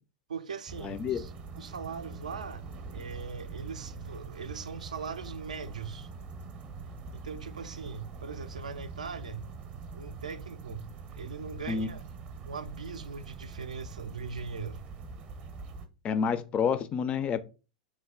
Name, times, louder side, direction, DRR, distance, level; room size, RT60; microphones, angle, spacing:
voice 1, 0.3-2.7 2.9-6.1 7.1-9.5 9.9-10.9 11.2-12.0 12.4-14.8, right 5 dB, 85° right, 0.4 m, -40 dB
sound 1, 0.7-15.9, right 4 dB, 35° right, 0.6 m, -44 dB
voice 2, 0.8-1.2 11.7-11.9 16.0-17.4, left 6 dB, 30° left, 0.3 m, -28 dB
3.1 x 2.1 x 3.6 m
hypercardioid pair, 100°, 4 cm